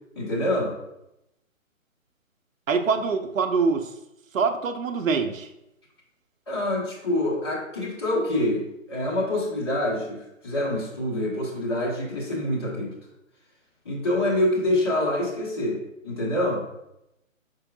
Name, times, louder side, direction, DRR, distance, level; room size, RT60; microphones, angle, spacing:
voice 1, 0.1-0.7 6.5-12.9 13.8-16.6, left 1 dB, 20° left, -5 dB, 0.9 m, -26 dB
voice 2, 2.7-3.9 4.3-5.5, right 5 dB, 70° right, 6 dB, 0.6 m, -24 dB
5.0 x 4.5 x 2.3 m, 0.86 s
figure-of-eight pair, 155°, 41 cm